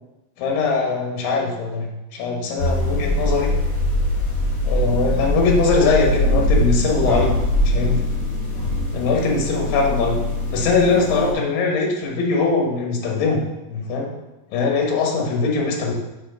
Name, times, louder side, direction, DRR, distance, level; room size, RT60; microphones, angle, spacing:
voice 1, 0.4-3.5 4.7-7.4 7.6-8.0 8.9-10.2 10.5-13.4 13.7-14.1 14.5-15.9, left 4 dB, 70° left, 0 dB, 2.8 m, -21 dB
sound 1, 2.6-11.3, left 1 dB, 30° left, 2.9 m, -22 dB
5.9 x 4.8 x 5.6 m, 0.99 s
omnidirectional pair, 4.3 m